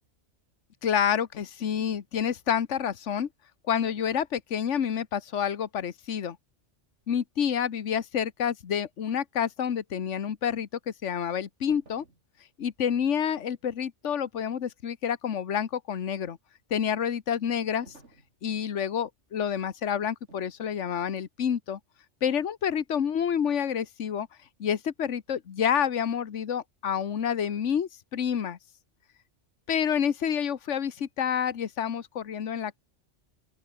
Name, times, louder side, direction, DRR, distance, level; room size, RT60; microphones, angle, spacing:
voice 1, 0.8-3.3 3.7-6.4 7.1-12.0 12.6-16.4 16.7-17.9 18.4-21.8 22.2-24.3 24.6-28.6 29.7-32.8, left 8 dB, 75° left, 1.5 m, -28 dB
sound 1, 11.7-12.3 17.8-18.3 20.3-20.6 21.0-21.2, right 3 dB, 70° right, 4.0 m, -54 dB
open air
omnidirectional pair, 1.2 m